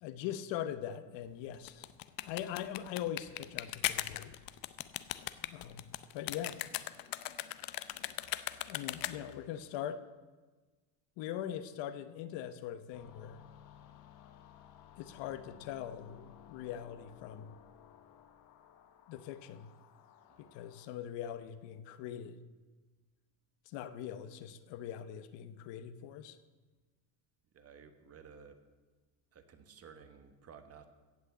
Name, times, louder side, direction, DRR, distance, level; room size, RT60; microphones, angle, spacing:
voice 1, 0.0-1.9 2.2-4.3 5.5-5.9 6.1-6.6 8.7-10.0 11.2-13.4 15.0-17.6 19.1-19.7 20.4-22.4 23.7-26.4, left 10 dB, 65° left, 12 dB, 1.0 m, -41 dB
sound 1, 1.5-9.4, left 15 dB, 50° left, 0.7 m, -39 dB
sound 2, 12.9-20.9, left 10 dB, 90° left, 1.4 m, -58 dB
voice 2, 27.5-28.6 29.3-30.9, right 6 dB, 30° right, 9 dB, 1.2 m, -55 dB
16.0 x 6.3 x 8.2 m, 1.3 s
cardioid pair, 135°, 46 cm